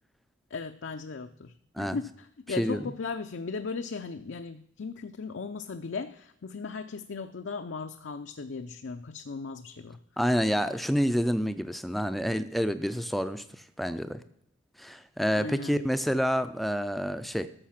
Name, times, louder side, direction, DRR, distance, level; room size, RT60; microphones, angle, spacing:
voice 1, 0.5-10.0 15.3-15.8, left 4 dB, 60° left, 7 dB, 0.5 m, -37 dB
voice 2, 10.2-14.2 14.8-17.5, equal, ahead, 11 dB, 0.4 m, -28 dB
13.0 x 6.5 x 5.9 m, 0.75 s
head